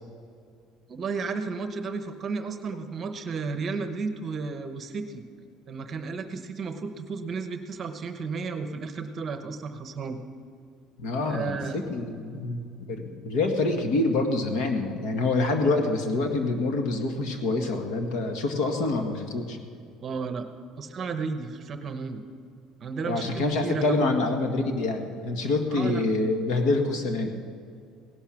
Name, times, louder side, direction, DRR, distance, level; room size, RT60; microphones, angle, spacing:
voice 1, 0.9-5.2 5.7-10.2 11.3-11.8 20.0-20.5 20.8-22.2 22.8-24.1 25.7-26.0, right 4 dB, 30° right, 8 dB, 0.9 m, -33 dB
voice 2, 11.0-19.6 23.0-27.4, left 2 dB, 70° left, 4 dB, 1.8 m, -26 dB
17.0 x 11.5 x 5.9 m, 2.3 s
cardioid pair, 170°, 0 cm